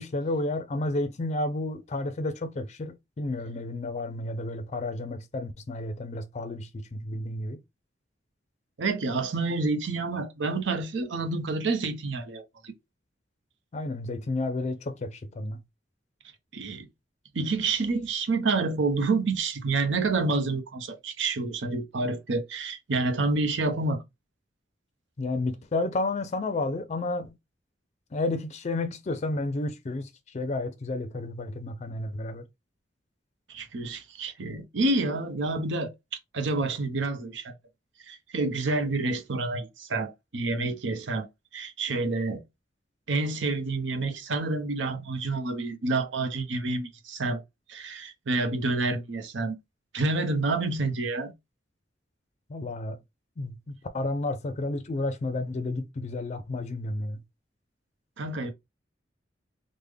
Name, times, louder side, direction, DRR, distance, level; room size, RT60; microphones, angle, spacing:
voice 1, 0.0-7.6 13.7-15.6 25.2-27.3 28.1-32.4 52.5-53.0 53.4-57.2, left 2 dB, 40° left, 0.4 m, -31 dB
voice 2, 8.8-12.7 16.5-16.9 17.3-24.0 33.5-35.9 36.3-37.5 38.1-41.3 41.5-42.4 43.1-47.4 47.7-49.6 49.9-51.3 58.2-58.5, right 3 dB, 90° right, 0.7 m, -28 dB
3.4 x 2.1 x 3.3 m
head